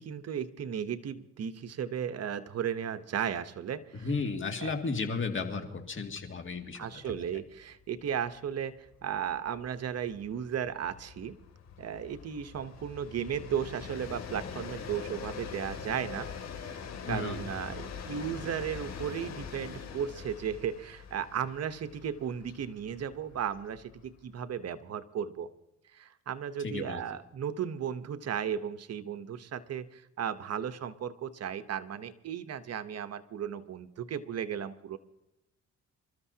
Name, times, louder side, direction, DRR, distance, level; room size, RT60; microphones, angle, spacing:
voice 1, 0.0-4.1 4.6-4.7 6.8-11.3 11.8-16.3 16.6-25.5 25.9-35.0, right 8 dB, 55° right, 11 dB, 1.0 m, -35 dB
voice 2, 3.9-6.9 17.0-17.4 26.6-27.0, left 4 dB, 40° left, 4 dB, 2.3 m, -34 dB
Train, 6.1-6.3 6.6-6.7 7.0-24.4, left 6 dB, 60° left, 2.7 m, -44 dB
28.0 x 13.5 x 2.8 m, 0.85 s
cardioid pair, 90°, 30 cm